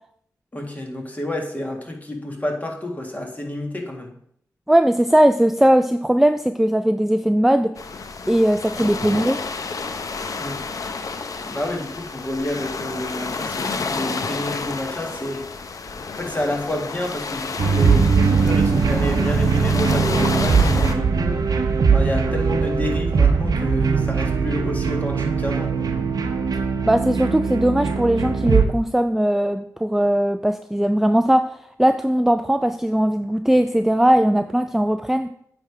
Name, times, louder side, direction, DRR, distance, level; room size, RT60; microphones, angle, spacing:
voice 1, 0.5-4.2 10.4-10.6 11.4-15.5 16.2-21.4 21.9-25.9, left 1 dB, 25° left, 1 dB, 1.8 m, -29 dB
voice 2, 4.7-7.8 8.3-9.4 26.8-35.3, right 1 dB, 5° right, 8 dB, 0.4 m, -19 dB
sound 1, 7.8-20.9, left 4 dB, 60° left, 0.6 m, -30 dB
sound 2, 17.6-28.7, right 5 dB, 70° right, 0.7 m, -20 dB
9.0 x 3.4 x 4.8 m, 0.68 s
cardioid pair, 45°, 7 cm